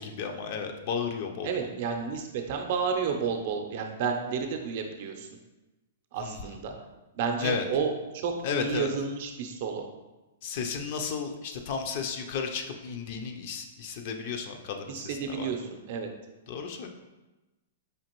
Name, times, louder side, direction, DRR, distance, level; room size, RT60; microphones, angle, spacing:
voice 1, 0.0-1.7 6.2-6.6 7.4-7.6 8.4-8.9 10.4-15.5 16.5-16.9, left 6 dB, 50° left, 5 dB, 0.4 m, -33 dB
voice 2, 1.4-5.3 6.1-6.7 7.1-9.8 14.9-16.1, right 6 dB, 55° right, 4 dB, 0.5 m, -31 dB
5.0 x 2.5 x 2.9 m, 1.1 s
hypercardioid pair, 145°, 0 cm